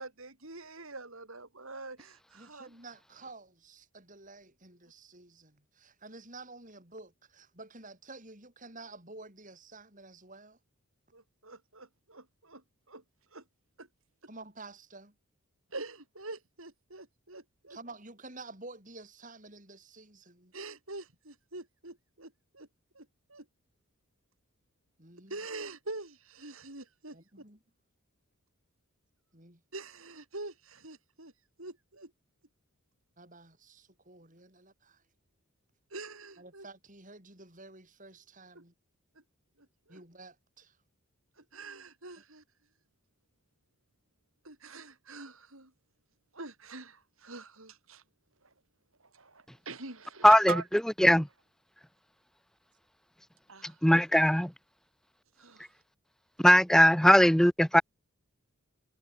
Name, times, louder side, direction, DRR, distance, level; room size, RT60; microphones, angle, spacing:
voice 1, 0.0-2.7 11.1-13.0 13.3-13.4 13.8-13.9 15.7-17.8 20.5-22.7 22.9-23.5 25.3-27.2 29.7-31.3 31.6-32.1 35.9-36.7 38.5-38.6 39.9-40.0 41.4-42.4 44.4-45.7 46.3-48.0 48.4-48.5 49.0-50.7 53.5-53.8 55.4-55.7, right 3 dB, 70° right, 6.2 m, -44 dB
voice 2, 2.3-10.6 14.3-15.1 17.7-20.5 25.0-25.4 27.1-27.6 29.3-29.6 33.2-35.0 36.4-38.7 39.9-40.8, right 3 dB, 35° right, 7.6 m, -50 dB
voice 3, 53.8-54.5 56.4-57.8, equal, ahead, 0.5 m, -19 dB
head